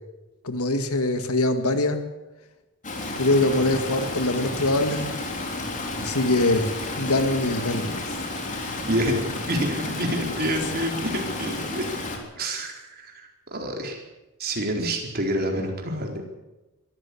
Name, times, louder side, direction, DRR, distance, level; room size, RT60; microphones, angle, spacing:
voice 1, 0.4-2.0 3.2-5.1 6.0-6.7 7.0-8.0, left 2 dB, 80° left, 8 dB, 2.1 m, -23 dB
Stream, 2.8-12.2, left 2 dB, 35° left, 3.7 m, -31 dB
voice 2, 8.8-11.9 12.4-14.0 14.4-16.2, right 1 dB, 45° right, 2 dB, 4.4 m, -28 dB
22.5 x 14.5 x 8.6 m, 1.1 s
head